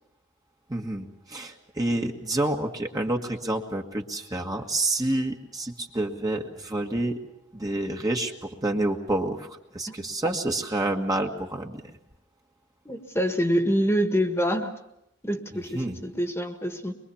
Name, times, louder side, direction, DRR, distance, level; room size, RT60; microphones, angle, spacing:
voice 1, 0.7-7.2 7.5-12.0 15.5-16.0, right 1 dB, 20° right, 2 dB, 1.7 m, -28 dB
voice 2, 12.9-14.7 15.2-16.9, equal, 15° left, 6 dB, 1.7 m, -26 dB
23.5 x 23.5 x 7.1 m, 0.83 s
head